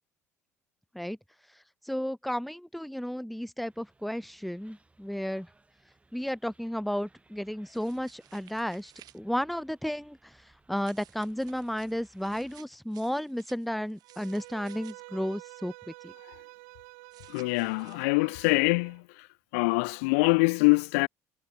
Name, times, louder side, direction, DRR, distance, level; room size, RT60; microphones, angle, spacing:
voice 1, 1.8-5.5 6.1-16.1, equal, ahead, 0.6 m, -33 dB
sound 1, 3.6-12.6, right 2 dB, 15° right, 5.3 m, -64 dB
sound 2, 7.7-9.2 10.8-14.9 17.1-18.1, right 13 dB, 55° right, 3.1 m, -57 dB
Bowed string instrument, 14.0-19.0, right 31 dB, 75° right, 1.3 m, -49 dB
voice 2, 17.3-19.0 19.5-21.1, left 30 dB, 75° left, 0.4 m, -24 dB
hypercardioid pair, 65°, 8 cm